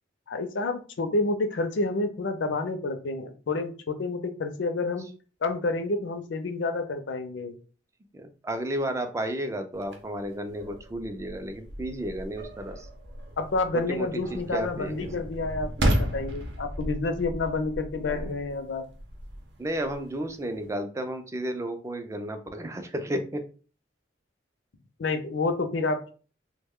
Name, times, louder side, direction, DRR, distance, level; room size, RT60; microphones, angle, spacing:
voice 1, 0.3-5.1 5.4-7.6 13.4-18.8 25.0-26.1, left 3 dB, 80° left, 8 dB, 0.5 m, -29 dB
voice 2, 8.1-12.9 13.7-15.1 18.0-18.4 19.6-23.5, right 1 dB, 15° right, 7 dB, 0.3 m, -33 dB
sound 1, 9.8-20.7, right 1 dB, 70° right, 0.7 m, -34 dB
3.0 x 2.1 x 3.5 m, 0.39 s
head